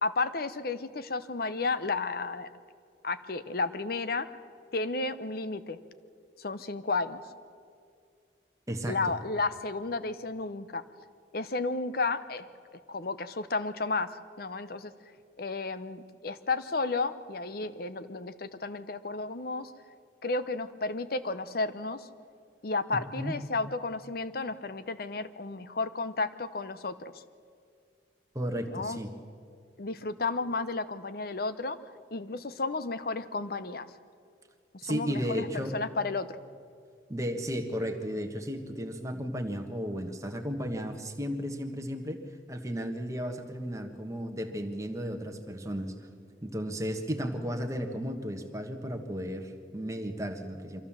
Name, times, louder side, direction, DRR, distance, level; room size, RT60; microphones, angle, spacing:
voice 1, 0.0-2.5 3.0-4.3 4.7-5.8 6.4-7.2 8.9-10.8 11.3-12.5 12.9-14.9 15.4-19.7 20.2-22.1 22.6-27.1 28.7-29.0 29.8-31.8 32.1-33.9 34.7-35.5 35.7-36.4, left 3 dB, 50° left, 13 dB, 0.8 m, -32 dB
voice 2, 8.7-9.2 23.2-23.4 28.3-29.1 34.8-35.8 37.1-42.2 42.5-45.9 46.4-50.8, equal, 15° right, 4 dB, 1.4 m, -34 dB
24.0 x 15.0 x 7.4 m, 2.3 s
head